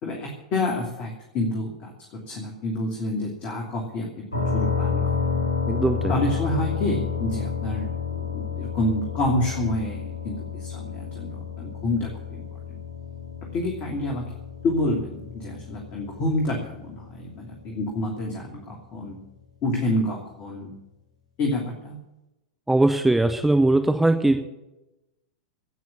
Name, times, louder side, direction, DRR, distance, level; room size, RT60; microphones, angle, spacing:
voice 1, 0.0-5.4 6.1-12.4 12.7-12.8 13.5-14.3 14.6-19.2 19.6-20.7 21.4-22.0, left 1 dB, 35° left, 0 dB, 2.9 m, -28 dB
sound 1, 4.3-18.0, left 6 dB, 75° left, 6.8 m, -30 dB
voice 2, 5.7-6.2 22.7-24.4, right 2 dB, 5° right, 7 dB, 0.9 m, -20 dB
17.5 x 6.2 x 9.9 m, 0.94 s
figure-of-eight pair, 95°, 4 cm